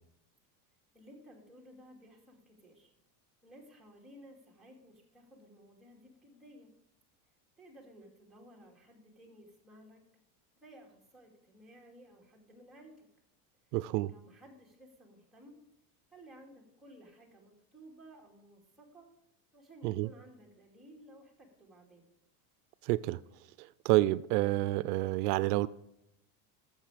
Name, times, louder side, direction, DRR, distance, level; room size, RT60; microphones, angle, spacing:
voice 1, 0.9-2.9 3.4-6.7 7.6-10.0 10.6-13.1 13.7-13.8 14.0-15.6 16.1-19.1 19.5-22.1, equal, ahead, 2.4 m, -56 dB
voice 2, 13.7-14.1 19.8-20.1 22.8-23.2 23.6-25.7, right 18 dB, 80° right, 0.5 m, -29 dB
12.0 x 7.2 x 4.9 m
supercardioid pair, 150°, 46 cm